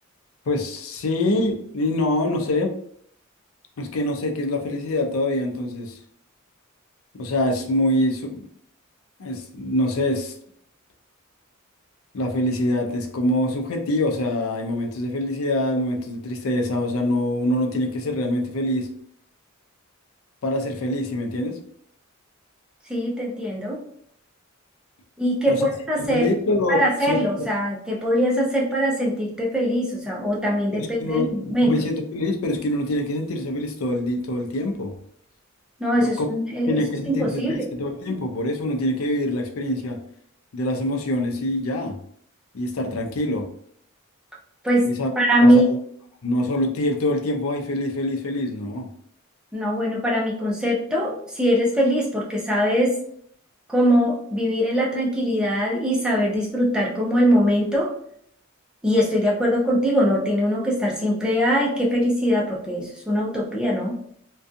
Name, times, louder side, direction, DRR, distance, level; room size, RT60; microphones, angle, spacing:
voice 1, 0.5-2.7 3.8-6.0 7.2-8.5 9.2-10.3 12.1-18.9 20.4-21.6 25.4-25.7 26.0-27.2 30.5-34.9 36.0-36.3 36.7-40.0 40.5-42.0 42.5-43.5 44.8-45.1 45.4-45.6 46.2-48.9, left 1 dB, 85° left, 3 dB, 0.5 m, -25 dB
voice 2, 22.9-23.8 25.2-26.3 26.7-31.8 35.8-37.7 44.6-44.9 45.2-45.7 49.5-53.0 53.7-57.9 58.8-64.0, equal, 5° right, -4 dB, 0.6 m, -22 dB
2.5 x 2.3 x 2.5 m, 0.66 s
head